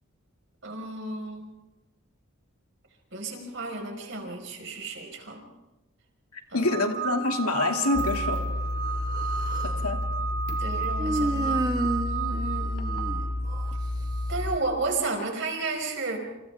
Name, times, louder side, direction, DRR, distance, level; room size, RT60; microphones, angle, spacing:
voice 1, 0.6-1.5 3.1-5.4 6.5-6.8 10.6-11.6 12.1-12.8 14.3-16.2, right 3 dB, 55° right, 2 dB, 5.0 m, -33 dB
voice 2, 6.5-8.4 9.6-10.0, left 2 dB, 90° left, 3 dB, 2.6 m, -26 dB
sound 1, 6.6-14.4, right 6 dB, 90° right, 3.5 m, -33 dB
sound 2, 7.9-14.6, left 1 dB, 50° left, 2.2 m, -31 dB
Human voice, 8.9-9.8 11.0-13.7, equal, 20° right, 1.6 m, -31 dB
29.0 x 28.0 x 3.6 m, 1.0 s
head